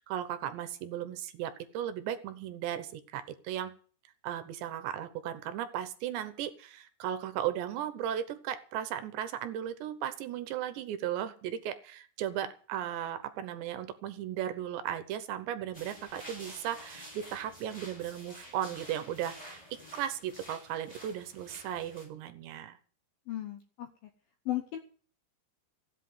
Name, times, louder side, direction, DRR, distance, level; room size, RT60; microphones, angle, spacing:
voice 1, 0.0-3.8 4.2-22.8, right 10 dB, 75° right, 11 dB, 3.0 m, -36 dB
sound 1, 15.7-22.0, equal, 10° left, 5.5 m, -49 dB
voice 2, 23.3-24.1 24.5-24.8, left 14 dB, 75° left, 7 dB, 2.2 m, -36 dB
15.5 x 8.4 x 9.4 m, 0.43 s
omnidirectional pair, 5.6 m